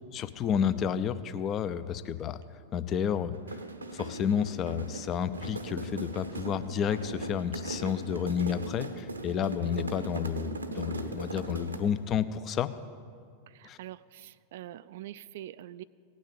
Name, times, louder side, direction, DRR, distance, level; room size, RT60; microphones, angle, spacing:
voice 1, 0.1-2.4 2.7-3.4 3.9-12.7 13.6-13.8, left 8 dB, 30° left, 13 dB, 0.6 m, -31 dB
sound 1, 3.3-12.0, right 2 dB, 80° right, 0.8 m, -39 dB
voice 2, 13.5-15.8, right 13 dB, 55° right, 17 dB, 0.3 m, -44 dB
17.0 x 6.3 x 8.9 m, 2.3 s
figure-of-eight pair, 90°, 0 cm